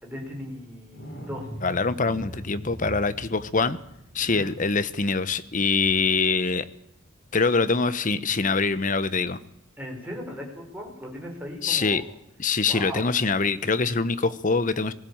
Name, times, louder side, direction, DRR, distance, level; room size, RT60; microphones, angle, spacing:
voice 1, 0.0-1.5 1.9-2.4 4.2-4.6 9.8-12.1 12.7-13.1, equal, 10° right, -1 dB, 5.8 m, -38 dB
sound 1, 0.9-6.3 9.4-9.5, equal, 55° left, 7.0 m, -41 dB
voice 2, 1.6-3.8 4.1-6.7 7.3-9.4 11.6-12.0 12.4-14.9, left 4 dB, 40° left, 14 dB, 1.0 m, -24 dB
19.5 x 16.0 x 8.8 m, 0.81 s
head